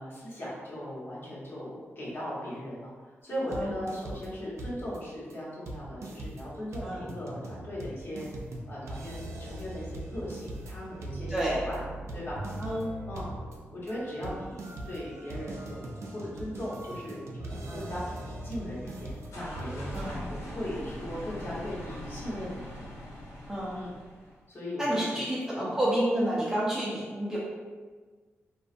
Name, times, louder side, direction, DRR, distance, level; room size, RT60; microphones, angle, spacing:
voice 1, 0.0-8.3 8.7-11.8 12.1-12.6 13.1-13.3 13.7-15.9 16.1-22.7 23.7-23.9 24.5-25.3 25.5-25.8, equal, 50° left, -8 dB, 1.0 m, -38 dB
sound 1, 3.5-4.3 4.6-5.0 5.3-5.4 5.7-20.1, right 1 dB, 80° right, 0.4 m, -40 dB
voice 2, 11.3-11.6 12.6-12.9 17.7-17.9 19.9-20.2 23.5-23.8 24.8-27.4, right 1 dB, 10° right, -7 dB, 0.5 m, -29 dB
sound 2, 18.8-24.4, left 1 dB, 85° left, 0.6 m, -42 dB
2.4 x 2.3 x 2.5 m, 1.5 s
cardioid pair, 90°, 5 cm